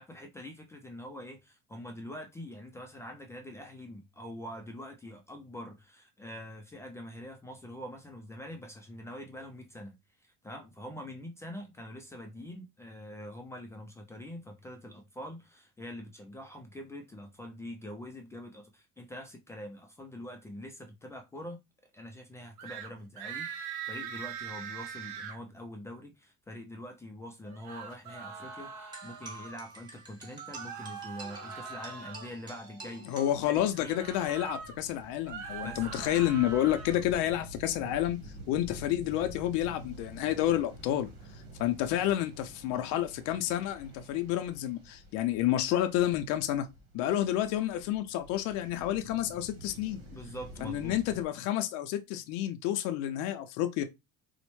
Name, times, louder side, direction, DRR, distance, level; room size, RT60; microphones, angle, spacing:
voice 1, 0.0-10.0 10.2-21.6 21.9-33.1 33.5-34.0 35.6-36.1 50.1-51.0, left 1 dB, 10° left, 0.3 m, -44 dB
sound 1, 22.6-22.9 23.2-25.4 27.4-29.6 30.6-32.3 33.7-34.8 35.2-37.0, right 7 dB, 65° right, 0.8 m, -42 dB
sound 2, 28.9-33.9, right 3 dB, 15° right, 1.0 m, -48 dB
voice 2, 33.0-38.2 38.5-46.7 46.9-50.0 50.6-53.8, left 12 dB, 70° left, 0.5 m, -30 dB
sound 3, 33.3-51.2, right 1 dB, 85° right, 1.2 m, -49 dB
4.1 x 2.1 x 3.0 m
cardioid pair, 150°, 30 cm